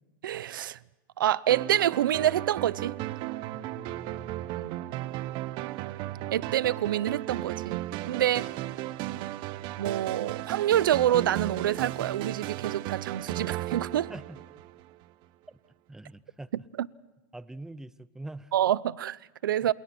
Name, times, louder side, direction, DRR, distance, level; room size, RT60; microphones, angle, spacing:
voice 1, 0.2-0.8 1.2-3.0 4.6-4.8 6.3-7.8 8.1-8.4 9.8-14.1 16.8-16.9 18.5-19.7, right 11 dB, 85° right, 0.8 m, -27 dB
sound 1, 1.5-15.0, right 16 dB, 45° right, 1.1 m, -35 dB
voice 2, 3.5-4.6 14.1-14.4 15.5-15.6 15.9-16.5 17.3-18.5 19.6-19.7, right 2 dB, 5° right, 0.8 m, -44 dB
29.0 x 28.0 x 4.4 m
supercardioid pair, 130°, 11 cm